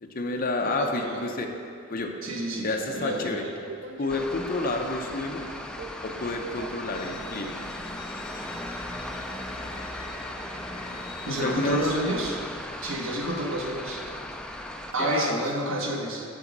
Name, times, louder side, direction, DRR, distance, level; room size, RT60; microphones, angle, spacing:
voice 1, 0.0-1.5 1.9-2.1 2.6-3.4 4.0-5.5 6.0-7.6 11.3-11.9 15.0-15.4, left 2 dB, 45° left, 3 dB, 0.7 m, -29 dB
voice 2, 0.6-1.3 2.2-3.5 11.2-12.4 12.8-14.0 14.9-16.3, right 1 dB, 90° right, 1 dB, 1.1 m, -30 dB
Subway metro underground, 2.5-12.3, right 4 dB, 65° right, 0.5 m, -47 dB
sound 1, 4.1-14.9, left 1 dB, 5° left, 0.3 m, -37 dB
Bowed string instrument, 6.9-12.0, left 4 dB, 75° left, 0.8 m, -46 dB
6.7 x 5.3 x 6.1 m, 2.4 s
head